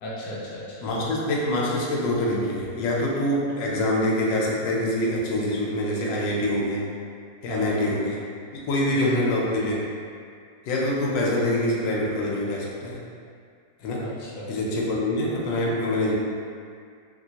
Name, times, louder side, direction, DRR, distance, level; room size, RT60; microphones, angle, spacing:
voice 1, 0.0-0.9 7.5-7.9 8.9-9.3 14.0-14.5, left 1 dB, 70° left, -6 dB, 1.0 m, -33 dB
voice 2, 0.8-6.8 7.4-8.2 8.5-9.8 10.7-13.0 13.8-14.0 14.5-16.1, left 1 dB, 85° left, -4 dB, 1.3 m, -25 dB
3.0 x 3.0 x 2.8 m, 2.2 s
omnidirectional pair, 2.0 m